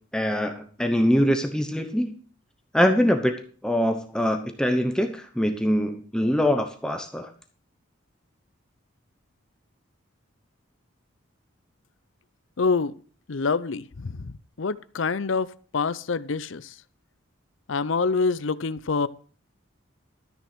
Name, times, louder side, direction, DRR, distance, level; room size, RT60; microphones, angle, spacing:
voice 1, 0.1-2.2 2.7-3.3 3.6-7.3, equal, 5° left, 0.9 m, -23 dB
voice 2, 12.6-12.9 13.3-14.3 14.6-16.7 17.7-19.1, left 4 dB, 70° left, 0.6 m, -26 dB
13.0 x 6.8 x 6.1 m
head